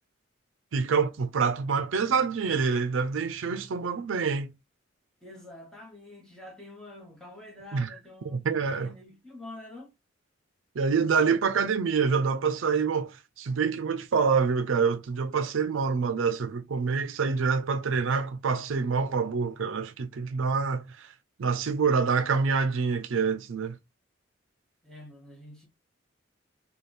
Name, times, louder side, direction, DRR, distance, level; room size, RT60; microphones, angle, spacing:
voice 1, 0.7-4.5 7.7-7.9 8.3-8.9 10.8-21.1 21.4-23.8, right 5 dB, 70° right, 0.4 m, -26 dB
voice 2, 5.2-9.9 24.8-25.7, left 2 dB, 5° left, 1.1 m, -47 dB
3.3 x 2.3 x 4.1 m
head